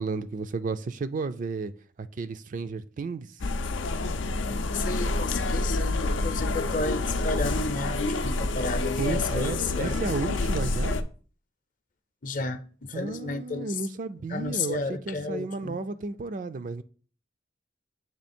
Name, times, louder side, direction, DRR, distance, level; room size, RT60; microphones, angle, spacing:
voice 1, 0.0-1.7 2.0-3.3 9.0-11.0 12.9-16.8, right 4 dB, 45° right, 0.4 m, -33 dB
sound 1, 3.4-11.0, left 2 dB, 90° left, 0.5 m, -28 dB
voice 2, 4.7-10.1 12.2-13.8 14.3-15.8, left 3 dB, 45° left, 0.6 m, -32 dB
7.3 x 3.1 x 4.3 m
head